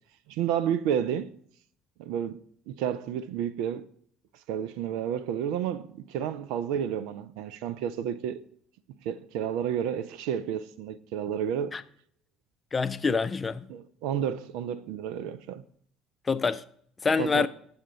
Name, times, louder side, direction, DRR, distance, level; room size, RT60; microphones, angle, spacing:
voice 1, 0.3-1.3 2.0-3.9 4.5-8.4 9.0-11.8 13.7-15.6 17.2-17.5, right 9 dB, 65° right, 0.4 m, -31 dB
voice 2, 12.7-13.7 16.3-16.6 17.0-17.5, left 4 dB, 25° left, 0.5 m, -26 dB
8.7 x 7.1 x 4.0 m
figure-of-eight pair, 55°, 0 cm